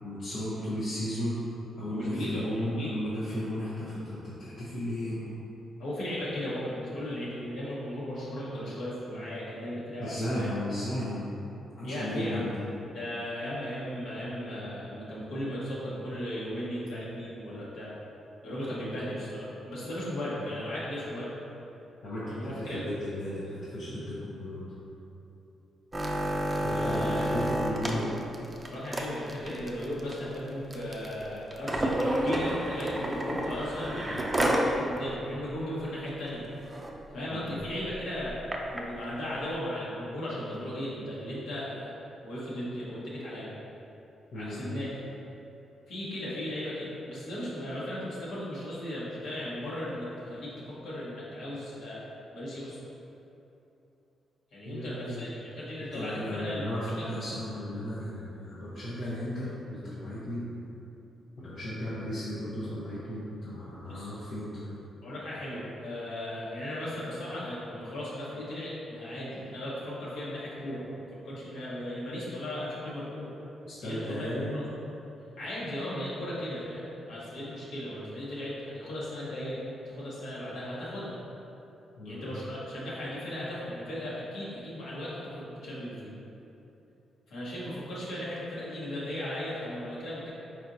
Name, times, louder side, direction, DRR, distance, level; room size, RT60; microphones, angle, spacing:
voice 1, 0.0-1.4 1.8-5.2 10.0-11.3 11.8-12.5 22.0-24.7 26.6-28.2 37.3-37.4 44.3-44.6 54.6-55.3 55.9-60.4 61.4-64.7 73.6-74.5 82.0-82.3, equal, 65° left, -10 dB, 0.9 m, -35 dB
voice 2, 1.9-3.0 5.8-10.5 11.8-12.5 12.9-17.9 18.4-21.3 22.3-22.8 26.5-27.4 28.7-36.4 37.1-38.4 38.7-41.9 42.2-43.5 44.3-44.9 45.9-52.0 52.3-52.8 54.5-56.6 57.0-57.1 63.8-64.1 65.0-70.8 71.1-73.3 73.8-74.7 75.4-81.2 82.0-86.1 87.3-90.3, left 1 dB, 80° left, -8 dB, 1.5 m, -36 dB
sound 1, 25.9-34.7 35.1-35.2 35.5-35.8 36.3-36.4 36.6-36.9 37.6-38.8 39.5-39.6, right 1 dB, 15° right, 0.4 m, -30 dB
4.5 x 4.4 x 2.7 m, 2.9 s
cardioid pair, 115°, 0 cm